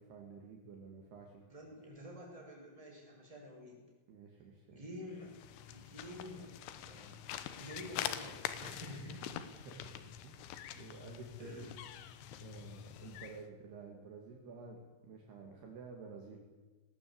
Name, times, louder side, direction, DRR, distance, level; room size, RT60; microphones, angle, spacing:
voice 1, 0.0-1.4 4.1-4.9 9.6-9.9 10.2-10.5 10.7-11.7 12.0-16.4, right 4 dB, 60° right, 1 dB, 3.9 m, -51 dB
voice 2, 1.5-3.8 4.7-5.4 5.7-9.3 11.4-11.7, equal, 5° right, -2 dB, 6.3 m, -49 dB
sound 1, 5.2-13.4, left 11 dB, 75° left, 3.4 m, -45 dB
19.0 x 18.5 x 8.7 m, 1.3 s
omnidirectional pair, 5.6 m